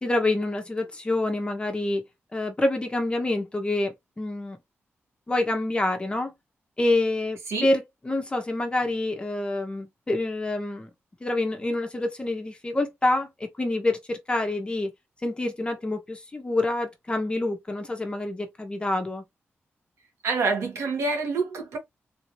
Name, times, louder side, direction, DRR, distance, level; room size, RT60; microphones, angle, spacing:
voice 1, 0.0-2.0 2.3-4.6 5.3-6.3 6.8-10.9 11.2-14.9 15.2-19.2, left 2 dB, 20° left, 1.1 m, -27 dB
voice 2, 20.2-21.8, right 4 dB, 85° right, 1.6 m, -26 dB
3.8 x 2.8 x 3.2 m
wide cardioid pair, 120°, 5 cm